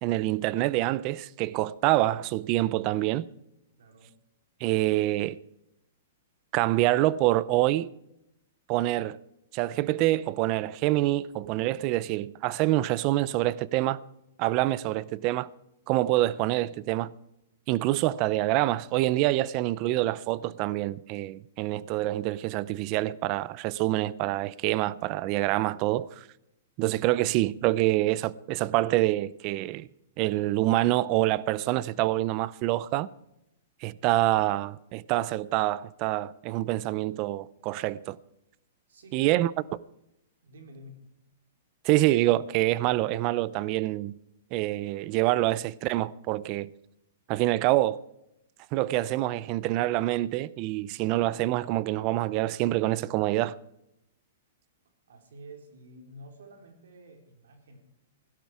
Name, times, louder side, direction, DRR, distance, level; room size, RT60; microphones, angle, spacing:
voice 1, 0.0-3.3 4.6-5.4 6.5-7.9 8.7-9.2 9.5-14.0 14.4-15.5 15.9-17.1 17.7-26.3 26.8-29.9 30.2-33.1 33.8-38.2 39.1-39.5 41.8-44.1 44.5-46.7 47.3-48.0 48.7-53.6, right 16 dB, 35° right, 0.5 m, -26 dB
voice 2, 3.8-4.1 38.9-39.4 40.4-41.0 55.1-57.8, right 1 dB, 90° right, 3.7 m, -49 dB
16.5 x 12.0 x 4.8 m
hypercardioid pair, 155°, 0 cm